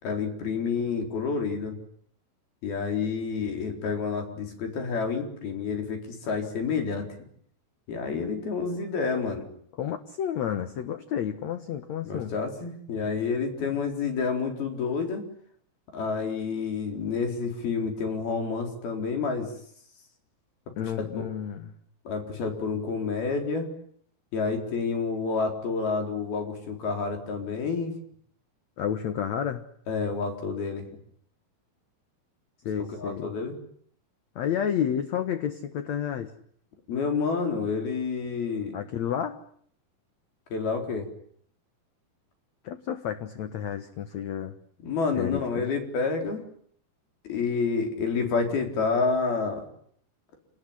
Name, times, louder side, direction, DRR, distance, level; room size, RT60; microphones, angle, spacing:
voice 1, 0.0-1.8 2.6-7.1 7.9-9.5 12.0-15.2 15.9-19.5 20.8-21.3 22.1-23.7 24.3-27.9 29.9-30.8 32.8-33.6 36.9-38.8 40.5-41.1 44.8-46.4 47.2-49.6, left 5 dB, 75° left, 4 dB, 6.1 m, -29 dB
voice 2, 9.8-12.3 20.8-21.7 28.8-29.7 32.6-33.3 34.4-36.3 38.7-39.4 42.6-44.5 45.1-45.7, left 9 dB, 60° left, 9 dB, 2.2 m, -31 dB
29.0 x 19.5 x 9.9 m, 0.64 s
omnidirectional pair, 4.3 m